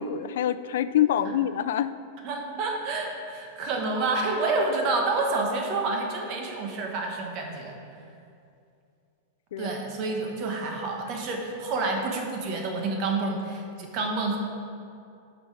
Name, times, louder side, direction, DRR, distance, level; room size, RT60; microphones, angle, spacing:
voice 1, 0.0-1.9 9.5-9.7, left 10 dB, 70° left, 13 dB, 0.3 m, -25 dB
voice 2, 2.2-7.7 9.6-14.4, right 3 dB, 40° right, 1 dB, 1.4 m, -28 dB
10.5 x 5.9 x 4.9 m, 2.5 s
supercardioid pair, 155°, 0 cm